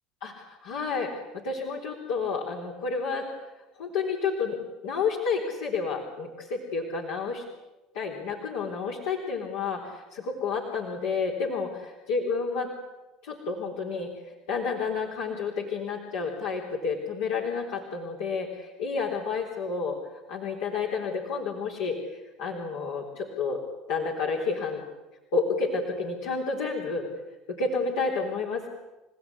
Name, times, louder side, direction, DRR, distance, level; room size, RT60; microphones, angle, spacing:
voice 1, 0.2-3.3 3.8-4.6 4.8-7.4 7.9-11.7 12.1-12.7 13.2-14.1 14.5-20.0 20.3-23.6 23.9-24.8 25.3-27.1 27.5-28.7, left 4 dB, 75° left, -2 dB, 3.9 m, -30 dB
29.0 x 16.0 x 9.9 m, 1.1 s
hypercardioid pair, 75°, 0 cm